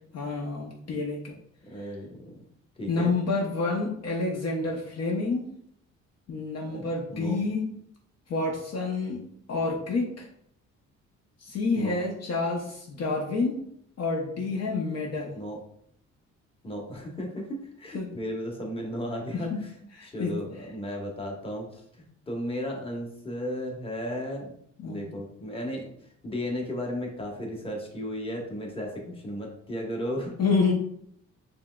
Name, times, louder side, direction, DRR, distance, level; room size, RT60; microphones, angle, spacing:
voice 1, 0.1-1.3 1.8-1.9 2.9-5.4 6.3-7.6 8.3-9.2 9.5-10.3 11.4-13.6 14.0-15.4 17.9-18.1 19.3-19.6 19.9-20.4 24.8-25.1 30.4-30.7, left 3 dB, 55° left, 0 dB, 0.8 m, -28 dB
voice 2, 1.6-2.4 2.8-3.1 6.7-7.4 11.7-12.0 15.3-15.6 16.6-19.5 20.1-21.8 22.3-24.5 24.8-25.9 26.2-30.3, equal, 20° left, -1 dB, 1.1 m, -34 dB
5.4 x 3.1 x 2.3 m, 0.69 s
cardioid pair, 90°, 30 cm